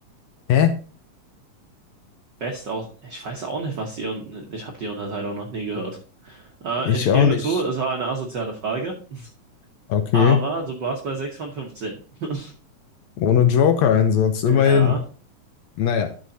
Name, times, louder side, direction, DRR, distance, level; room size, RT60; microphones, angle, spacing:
voice 1, 2.4-6.0 6.2-9.3 10.1-11.9 12.2-12.5 14.5-15.0, right 3 dB, 70° right, 1 dB, 1.0 m, -29 dB
voice 2, 6.9-7.6 9.9-10.4 13.2-14.9 15.8-16.1, left 8 dB, 70° left, 8 dB, 1.8 m, -18 dB
11.5 x 6.1 x 2.7 m, 0.38 s
omnidirectional pair, 3.6 m